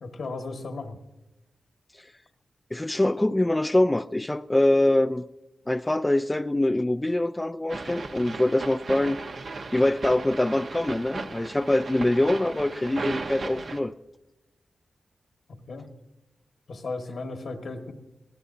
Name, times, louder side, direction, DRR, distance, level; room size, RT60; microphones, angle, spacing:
voice 1, 0.0-1.0 15.7-15.9 16.7-17.9, left 3 dB, 70° left, 1.7 m, -35 dB
voice 2, 2.7-5.2 5.7-9.2 9.7-13.9, left 1 dB, 20° left, 0.4 m, -24 dB
sound 1, 7.7-13.8, right 3 dB, 65° right, 1.2 m, -36 dB
21.0 x 17.0 x 2.8 m
cardioid pair, 55°, 0 cm